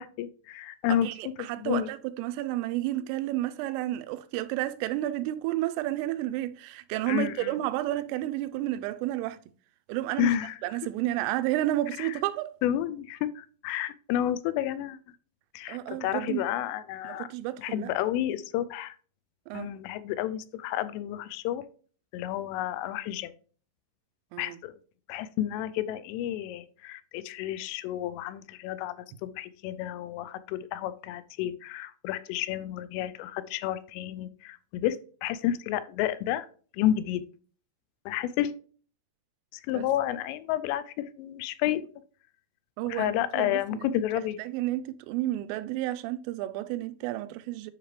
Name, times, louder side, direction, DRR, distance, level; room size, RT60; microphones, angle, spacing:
voice 1, 0.0-1.1 1.6-1.9 7.1-7.6 10.2-10.6 12.0-12.1 12.6-15.0 15.5-17.3 17.6-19.0 19.5-21.7 22.1-23.3 24.4-24.8 25.1-29.0 29.2-36.5 36.7-37.2 38.1-38.5 39.7-41.8 42.9-44.4, left 12 dB, 90° left, 3.2 m, -30 dB
voice 2, 0.9-9.4 9.9-10.4 10.6-12.5 15.7-16.5 17.0-17.9 19.5-19.7 24.3-24.6 39.7-39.9 42.8-43.9 44.4-47.7, right 15 dB, 90° right, 3.1 m, -31 dB
9.9 x 5.0 x 3.2 m
omnidirectional pair, 5.6 m